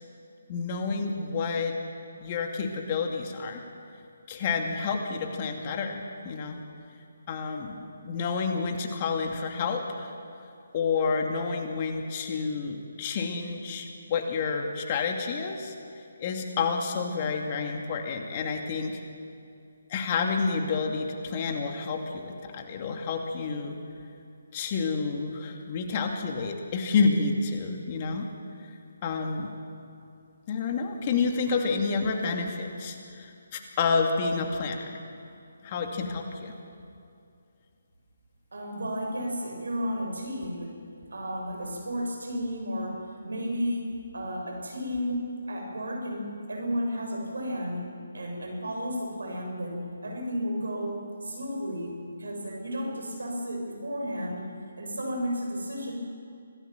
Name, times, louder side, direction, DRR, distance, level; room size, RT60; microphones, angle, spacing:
voice 1, 0.5-1.8 2.2-3.6 4.3-6.6 7.3-10.1 10.7-15.7 16.2-19.0 19.9-23.8 24.5-28.3 29.0-29.5 30.5-34.8 35.6-36.5, left 4 dB, 35° left, 3 dB, 2.6 m, -29 dB
voice 2, 38.5-40.7 41.1-47.9 48.1-54.5 54.8-55.9, equal, 75° right, 1 dB, 7.3 m, -33 dB
26.0 x 18.0 x 7.4 m, 2.5 s
figure-of-eight pair, 145°, 0 cm